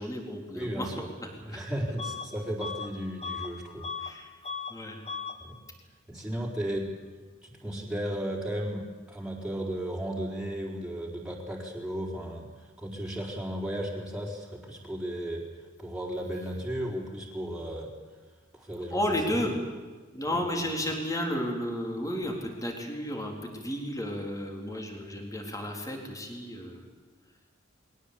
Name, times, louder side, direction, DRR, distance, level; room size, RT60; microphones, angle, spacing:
voice 1, 0.0-1.6 4.0-4.3 4.7-5.0 18.7-19.6 20.1-26.9, equal, 15° left, 2 dB, 3.9 m, -33 dB
voice 2, 0.5-1.1 1.5-3.9 5.4-5.6 6.1-6.9 7.4-15.4 15.8-17.9 18.5-19.4 20.3-20.4 25.1-25.2, right 1 dB, 5° right, -3 dB, 4.4 m, -35 dB
Bus / Alarm, 2.0-2.3 2.6-4.2 4.4-4.8 5.0-5.4, left 5 dB, 35° left, 1.8 m, -37 dB
21.5 x 18.5 x 8.6 m, 1.4 s
head